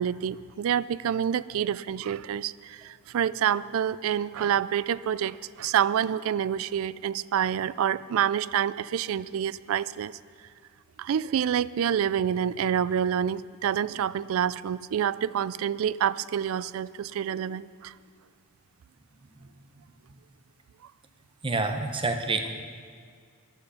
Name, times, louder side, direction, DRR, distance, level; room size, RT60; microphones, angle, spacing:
voice 1, 0.0-10.1 11.0-17.9, right 9 dB, 65° right, 19 dB, 0.3 m, -27 dB
voice 2, 21.4-22.5, right 3 dB, 25° right, 6 dB, 0.8 m, -27 dB
13.5 x 11.5 x 5.6 m, 2.1 s
head